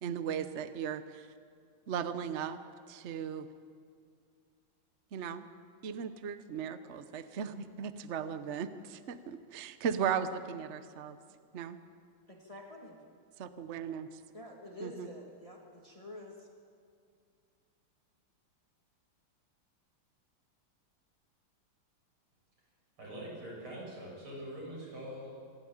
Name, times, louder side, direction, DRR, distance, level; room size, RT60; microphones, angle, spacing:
voice 1, 0.0-1.3 1.9-2.6 2.9-3.5 5.1-5.5 5.8-11.2 11.5-11.8 13.4-14.2 14.8-15.1, right 7 dB, 60° right, 11 dB, 0.7 m, -37 dB
voice 2, 12.3-13.0 14.3-16.5, left 1 dB, 15° left, -1 dB, 2.2 m, -48 dB
voice 3, 23.0-25.4, equal, 80° right, -4 dB, 8.4 m, -43 dB
25.5 x 12.5 x 8.8 m, 2.3 s
omnidirectional pair, 2.3 m